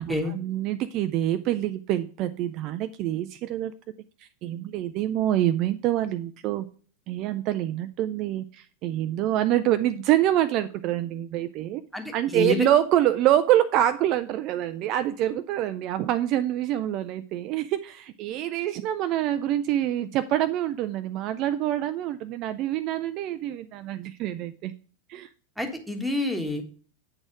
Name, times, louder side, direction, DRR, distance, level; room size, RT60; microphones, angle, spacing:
voice 1, 0.0-3.7 4.4-6.7 7.1-11.8 12.1-24.7 25.1-25.3, right 12 dB, 40° right, 11 dB, 0.4 m, -26 dB
voice 2, 11.9-12.7 25.6-26.6, left 2 dB, ahead, 4 dB, 1.3 m, -28 dB
8.8 x 4.1 x 4.8 m, 0.43 s
figure-of-eight pair, 90°, 0 cm